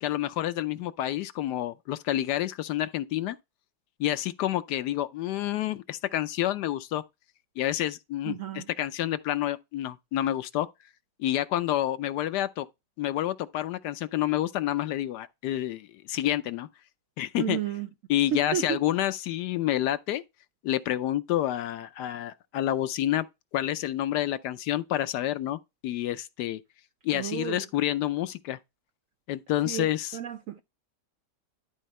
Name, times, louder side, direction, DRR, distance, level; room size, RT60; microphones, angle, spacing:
voice 1, 0.0-3.4 4.0-7.0 7.6-10.7 11.2-12.7 13.0-16.7 17.2-17.6 18.1-20.2 20.6-23.3 23.5-26.6 27.0-28.6 29.3-30.2, left 13 dB, 75° left, 1.2 m, -29 dB
voice 2, 8.3-8.6 17.4-17.9 18.3-18.8 27.1-27.6 29.7-29.9 30.1-30.6, right 11 dB, 70° right, 0.8 m, -32 dB
12.0 x 4.4 x 3.1 m
omnidirectional pair, 1.9 m